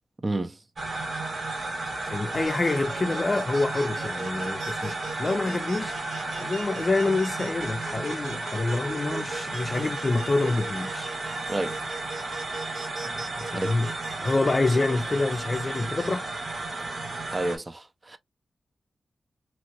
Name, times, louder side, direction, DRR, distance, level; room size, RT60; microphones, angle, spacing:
voice 1, 0.2-0.6 11.5-11.8 13.5-13.8 17.3-18.2, right 2 dB, 35° right, 0.6 m, -30 dB
sound 1, 0.8-17.6, right 2 dB, 65° right, 1.1 m, -33 dB
voice 2, 2.1-6.0 6.4-11.1 13.4-13.9 14.2-16.3, left 3 dB, 45° left, 0.4 m, -27 dB
sound 2, 2.5-16.1, right 3 dB, 80° right, 0.7 m, -40 dB
3.0 x 2.6 x 2.9 m
cardioid pair, 50°, 0 cm